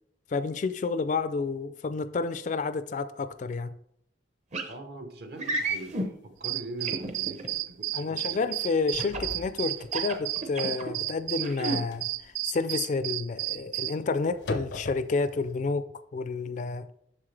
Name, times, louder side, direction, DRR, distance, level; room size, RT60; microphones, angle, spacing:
voice 1, 0.3-3.7 7.9-15.8 16.1-16.9, left 4 dB, 45° left, 13 dB, 0.3 m, -30 dB
sound 1, 4.5-4.7 5.4-6.1 6.9-7.5 9.0-9.3 9.8-10.9 11.4-11.8, right 2 dB, 40° right, 0.8 m, -31 dB
voice 2, 4.7-8.5, right 2 dB, 60° right, 6 dB, 1.0 m, -42 dB
sound 2, 5.9-6.0 6.5-6.6 7.0-7.2 7.6-8.0 8.3-15.5, left 2 dB, 90° left, 0.7 m, -42 dB
sound 3, 6.4-14.0, right 16 dB, 90° right, 0.3 m, -32 dB
7.4 x 6.4 x 3.3 m, 0.71 s
head